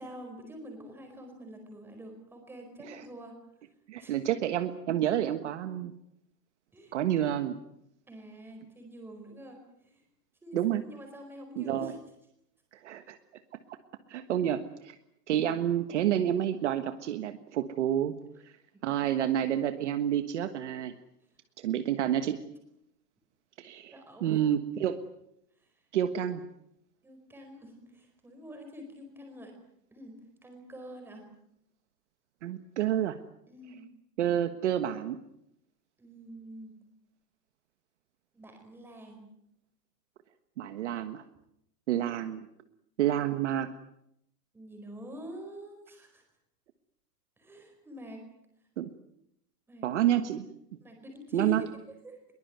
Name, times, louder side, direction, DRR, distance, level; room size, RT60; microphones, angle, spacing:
voice 1, 0.0-3.4 4.0-4.2 6.7-7.0 8.1-9.9 10.4-10.6 10.8-12.0 18.9-19.5 23.9-24.6 27.0-29.5 29.9-31.2 33.5-33.9 36.0-36.7 38.3-39.3 44.5-46.2 47.4-48.2 49.7-49.9 50.8-51.7 52.0-52.2, right 1 dB, 5° right, 3 dB, 4.6 m, -46 dB
voice 2, 3.9-5.9 6.9-7.6 10.5-10.8 11.6-11.9 12.8-13.2 13.7-13.8 14.1-14.9 15.3-18.1 18.4-18.5 18.8-20.9 21.6-22.4 23.6-23.9 24.2-25.0 25.9-26.4 32.4-33.2 34.2-35.2 40.6-41.2 41.9-42.5 43.0-43.7 48.8-48.9 49.8-50.4 51.3-51.7, right 11 dB, 45° right, 9 dB, 1.5 m, -29 dB
22.5 x 21.5 x 9.3 m, 0.76 s
supercardioid pair, 180°, 47 cm